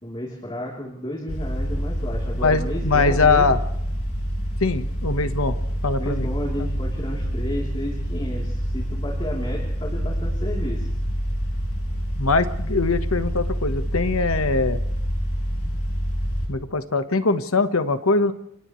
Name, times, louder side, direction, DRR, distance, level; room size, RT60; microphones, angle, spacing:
voice 1, 0.0-3.6 6.0-10.9, equal, 25° left, -2 dB, 3.4 m, -32 dB
sound 1, 1.3-16.5, equal, 90° left, 6.3 m, -27 dB
voice 2, 2.4-3.6 4.6-5.5 5.8-6.3 12.2-14.8 16.5-18.3, left 3 dB, 70° left, 9 dB, 1.3 m, -22 dB
30.0 x 27.0 x 3.2 m, 0.75 s
head